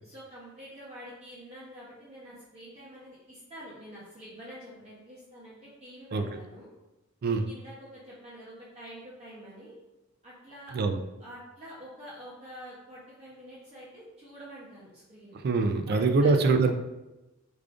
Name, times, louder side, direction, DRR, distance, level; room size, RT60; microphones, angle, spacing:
voice 1, 0.0-6.7 7.3-9.8 10.2-10.8 11.2-15.4 15.9-16.3, equal, 30° right, -8 dB, 0.7 m, -47 dB
voice 2, 15.4-16.7, right 3 dB, 50° right, 7 dB, 0.3 m, -23 dB
4.8 x 2.4 x 2.4 m, 1.0 s
head